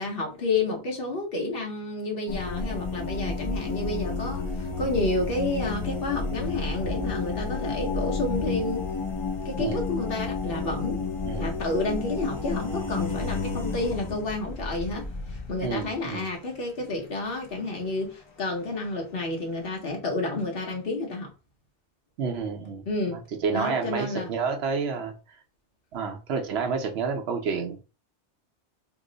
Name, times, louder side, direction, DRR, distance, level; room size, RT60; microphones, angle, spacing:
voice 1, 0.0-8.9 9.4-11.0 11.3-21.3 22.9-23.2 23.5-24.3, left 2 dB, 55° left, 1.1 m, -30 dB
sound 1, 2.3-16.1 18.0-18.1 18.6-19.0 19.3-19.7, left 4 dB, 30° left, 0.6 m, -31 dB
voice 2, 15.6-16.2 22.2-22.8 23.4-25.1 25.9-27.8, right 5 dB, 70° right, 0.9 m, -29 dB
2.9 x 2.0 x 3.8 m
omnidirectional pair, 1.2 m